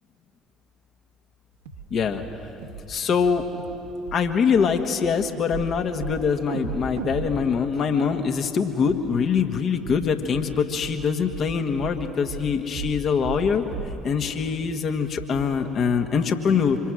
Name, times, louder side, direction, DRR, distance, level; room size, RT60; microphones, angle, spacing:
sound 1, 1.6-1.9 2.1-2.4 2.6-2.8 3.1-3.3 3.6-3.8 4.1-4.2 4.5-4.7 5.0-5.1 5.5-5.7 6.0-6.2 6.5-8.5 8.9-9.0 9.4-9.5 9.8-10.0 10.3-10.5 10.8-11.0 11.3-11.5 11.8-12.0 12.3-12.5 12.7-13.0 13.2-13.5 13.7-13.9 14.2-14.3 14.7-14.8 15.2-15.3, right 6 dB, 75° right, 1.5 m, -35 dB
voice 1, 1.9-2.2 2.9-3.4 4.1-13.6 14.0-16.8, left 6 dB, 45° left, 6 dB, 1.7 m, -23 dB
26.5 x 24.0 x 6.3 m, 3.0 s
figure-of-eight pair, 55°, 0 cm